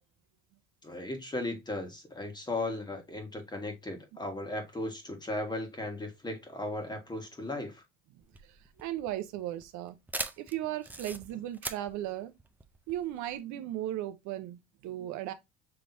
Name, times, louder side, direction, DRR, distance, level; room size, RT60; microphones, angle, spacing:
voice 1, 0.8-7.8, left 2 dB, 15° left, 1.5 m, -36 dB
sound 1, 8.2-13.4, right 2 dB, 5° right, 0.4 m, -41 dB
voice 2, 8.4-10.0 10.4-12.3 12.9-15.3, right 13 dB, 65° right, 0.7 m, -36 dB
5.9 x 3.3 x 2.6 m
cardioid pair, 120°, 31 cm